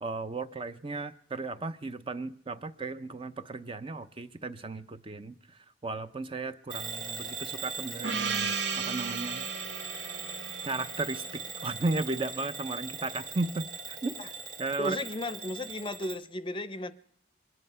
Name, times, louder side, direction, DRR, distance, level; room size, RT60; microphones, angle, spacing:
voice 1, 0.0-5.4 5.8-9.5 9.9-10.2 10.6-14.1 14.6-15.0, right 3 dB, 30° right, 0.5 m, -35 dB
Bell / Alarm, 6.7-16.2, right 5 dB, 45° right, 2.0 m, -40 dB
Gong, 8.0-12.4, right 5 dB, 65° right, 0.9 m, -36 dB
voice 2, 14.8-16.9, left 1 dB, 25° left, 0.6 m, -35 dB
23.5 x 9.7 x 5.5 m
head